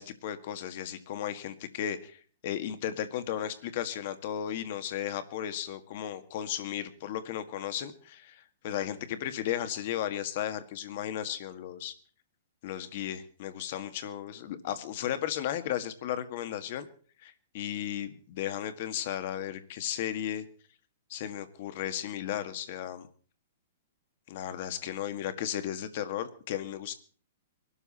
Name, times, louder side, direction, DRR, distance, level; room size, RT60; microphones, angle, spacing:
voice 1, 0.0-11.9 12.6-16.9 17.2-20.4 21.1-23.1 24.3-26.9, left 10 dB, 45° left, 10 dB, 1.8 m, -35 dB
22.0 x 13.0 x 4.2 m, 0.42 s
hypercardioid pair, 165°, 0 cm